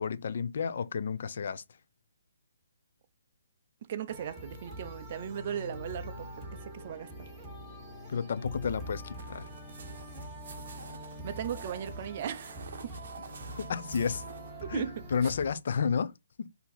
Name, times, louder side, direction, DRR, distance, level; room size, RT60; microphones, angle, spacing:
voice 1, 0.0-1.6 8.1-9.5 13.6-14.2 14.7-16.1 16.4-16.5, left 6 dB, 50° left, 0.4 m, -31 dB
voice 2, 3.9-6.3 6.6-7.3 11.2-12.9 14.6-15.3, right 9 dB, 30° right, 0.5 m, -37 dB
sound 1, 4.1-15.5, equal, 5° right, 1.0 m, -44 dB
sound 2, 9.2-14.5, right 5 dB, 50° right, 0.9 m, -50 dB
4.4 x 2.7 x 3.9 m
hypercardioid pair, 170°, 0 cm